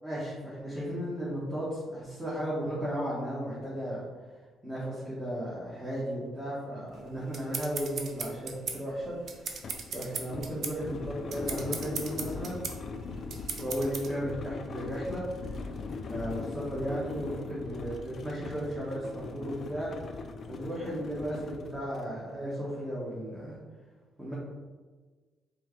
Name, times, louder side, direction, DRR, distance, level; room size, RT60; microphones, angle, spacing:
voice 1, 0.0-4.0 4.6-9.2 9.9-12.6 13.6-15.6 16.0-19.9 20.5-23.6 24.2-24.3, equal, 10° right, -8 dB, 1.4 m, -35 dB
sound 1, 7.0-7.1 7.4-22.1, left 4 dB, 50° left, 0.4 m, -41 dB
sound 2, 7.0-14.1, right 5 dB, 60° right, 0.6 m, -38 dB
4.5 x 3.3 x 3.2 m, 1.3 s
cardioid pair, 95°, 0 cm